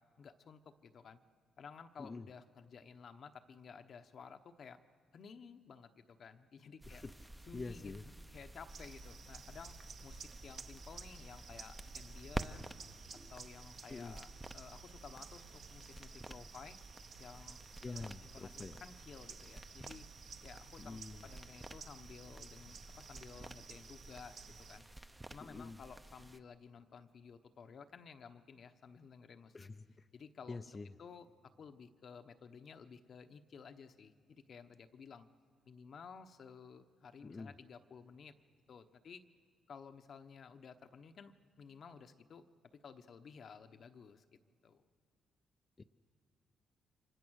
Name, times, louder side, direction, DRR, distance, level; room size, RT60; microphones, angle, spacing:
voice 1, 0.2-1.2 1.6-4.8 5.1-7.0 7.5-7.9 8.3-9.8 10.0-12.8 13.3-16.8 17.2-17.6 17.9-20.1 20.4-24.8 25.3-29.6 30.1-30.6 31.0-35.3 35.7-38.3 38.7-39.2 39.7-44.2 44.6-44.8, left 6 dB, 55° left, 8 dB, 1.0 m, -54 dB
sound 1, 6.8-26.4, right 1 dB, 15° right, 0.8 m, -51 dB
voice 2, 7.5-8.0 13.9-14.2 17.8-18.8 20.8-21.2 25.4-25.8 29.5-30.1 30.5-31.0 37.2-37.5 45.8-45.9, left 3 dB, 30° left, 6 dB, 0.6 m, -46 dB
sound 2, 8.7-24.8, right 6 dB, 60° right, 1.1 m, -54 dB
29.5 x 25.0 x 6.4 m, 2.1 s
cardioid pair, 90°, 0 cm